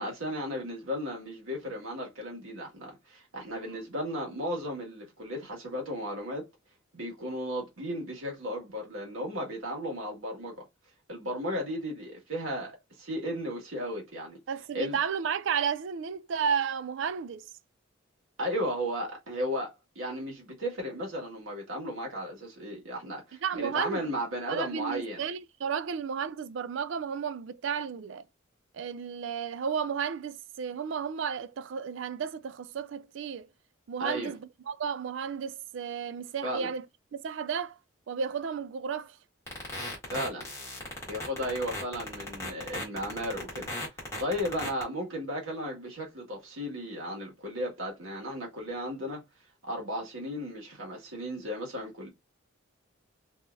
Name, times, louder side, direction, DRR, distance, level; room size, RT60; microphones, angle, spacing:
voice 1, 0.0-6.4 6.9-10.6 11.1-14.4 14.7-15.0 18.4-25.2 34.0-34.3 36.4-36.7 40.1-40.5 41.1-43.7 44.2-49.2 49.6-52.1, equal, 90° right, 1.7 m, -35 dB
voice 2, 14.5-17.5 23.4-24.0 24.5-28.2 28.7-33.5 33.9-34.4 34.7-36.9 37.1-37.8 38.1-39.2, right 7 dB, 65° right, 0.4 m, -33 dB
sound 1, 39.5-44.8, left 1 dB, 15° left, 1.5 m, -36 dB
3.7 x 2.9 x 2.5 m
head